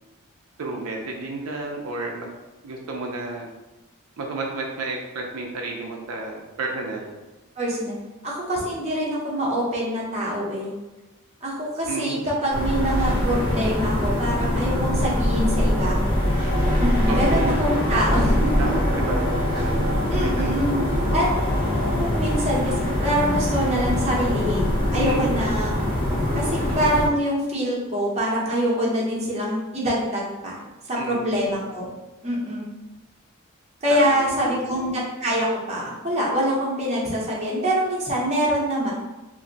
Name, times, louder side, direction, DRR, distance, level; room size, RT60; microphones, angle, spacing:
voice 1, 0.6-2.3 2.6-3.5 4.2-7.2 11.9-12.2 17.1-17.6 18.6-21.2 24.9-25.4 31.0-31.4 33.9-34.6, right 3 dB, 80° right, 0 dB, 0.4 m, -31 dB
voice 2, 7.6-7.9 8.2-10.7 11.4-16.0 16.8-18.6 20.1-20.8 21.1-21.3 21.6-22.7 23.0-25.9 26.3-30.6 30.9-31.9 32.2-32.7 33.8-38.9, equal, 30° right, -5 dB, 0.7 m, -25 dB
sound 1, 12.5-27.1, left 1 dB, 20° left, 0.9 m, -23 dB
2.5 x 2.1 x 3.8 m, 1.1 s
head